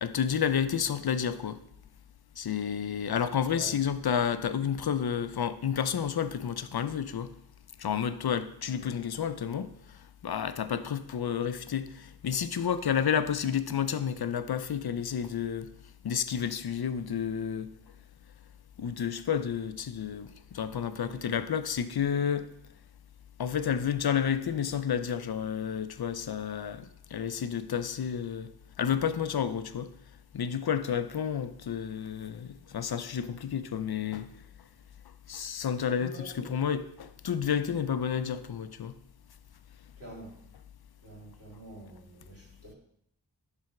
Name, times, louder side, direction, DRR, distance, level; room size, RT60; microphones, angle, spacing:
voice 1, 0.0-1.6 2.4-7.3 7.8-9.7 10.2-15.7 16.0-17.7 18.8-22.5 23.4-28.5 28.8-29.9 30.3-34.3 35.3-39.0, left 8 dB, 70° left, 0.5 m, -30 dB
voice 2, 21.0-21.4 36.0-36.7 40.0-40.4 41.0-42.7, right 1 dB, 35° right, 2.4 m, -47 dB
7.6 x 3.4 x 5.8 m
wide cardioid pair, 50°, 39 cm